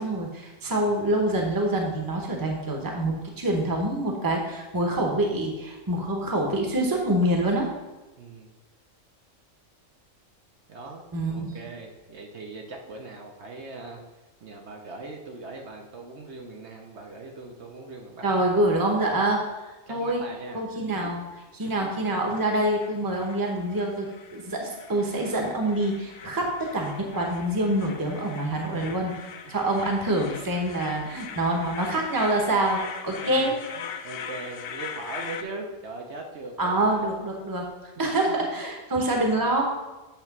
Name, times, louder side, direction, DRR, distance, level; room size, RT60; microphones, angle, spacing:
voice 1, 0.0-7.7 11.1-11.5 18.2-19.4 19.9-20.2 20.5-21.2 21.6-29.1 29.5-33.5 36.6-37.7 38.0-39.6, right 1 dB, 20° right, 1 dB, 1.0 m, -26 dB
voice 2, 8.2-8.5 10.7-14.0 14.4-18.3 19.9-21.1 21.8-21.9 24.6-24.8 28.8-28.9 29.4-29.5 33.1-37.1 38.0-38.3, right 3 dB, 60° right, 1 dB, 1.1 m, -40 dB
sound 1, 21.6-35.4, left 7 dB, 65° left, 0.6 m, -41 dB
8.8 x 3.1 x 5.9 m, 1.1 s
omnidirectional pair, 1.3 m